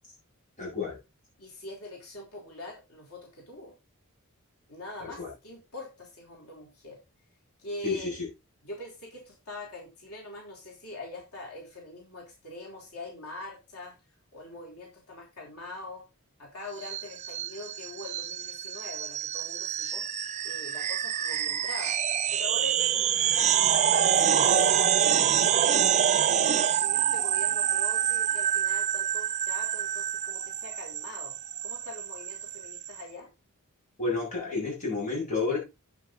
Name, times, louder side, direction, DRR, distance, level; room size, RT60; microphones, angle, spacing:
voice 1, 0.6-1.0 5.0-5.3 7.8-8.3 34.0-35.6, left 4 dB, 35° left, 7.2 m, -30 dB
voice 2, 1.4-3.7 4.7-7.0 7.6-8.1 8.6-13.9 14.3-16.0 16.4-20.0 20.4-22.0 22.3-24.9 25.5-26.0 26.6-31.3 31.6-33.3, left 2 dB, 85° left, 3.9 m, -43 dB
sound 1, 16.8-33.0, right 9 dB, 30° right, 0.4 m, -26 dB
8.8 x 8.5 x 4.0 m
head